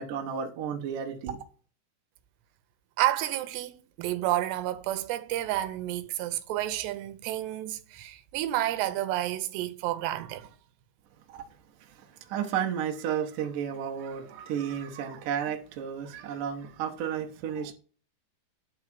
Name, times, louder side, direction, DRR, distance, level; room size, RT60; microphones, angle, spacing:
voice 1, 0.0-1.4 11.3-11.5 11.8-17.7, right 8 dB, 65° right, 2.2 m, -33 dB
voice 2, 3.0-10.5, right 14 dB, 85° right, 2.9 m, -30 dB
10.0 x 4.8 x 5.9 m
omnidirectional pair, 4.8 m